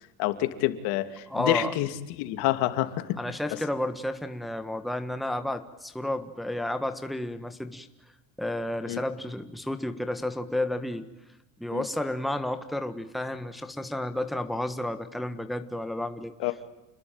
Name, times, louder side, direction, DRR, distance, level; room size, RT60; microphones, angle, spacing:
voice 1, 0.2-1.9 2.2-3.2 8.9-9.0 11.7-11.8 16.4-16.5, left 14 dB, 70° left, 9 dB, 2.7 m, -27 dB
voice 2, 1.3-1.7 3.2-7.9 8.4-11.1 11.6-16.3, left 1 dB, ahead, 8 dB, 1.4 m, -31 dB
29.0 x 21.0 x 9.0 m, 0.99 s
cardioid pair, 135°, 39 cm